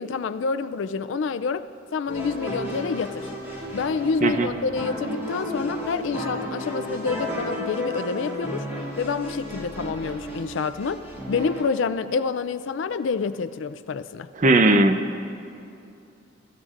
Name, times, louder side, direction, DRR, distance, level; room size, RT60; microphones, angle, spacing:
voice 1, 0.0-3.3 3.7-8.7 9.0-11.0 11.3-14.3, left 5 dB, 70° left, 11 dB, 0.4 m, -28 dB
sound 1, 2.1-11.6, equal, 15° right, 2.2 m, -33 dB
voice 2, 14.4-15.2, right 2 dB, 40° right, 8 dB, 0.6 m, -18 dB
21.5 x 13.0 x 2.5 m, 2.6 s
head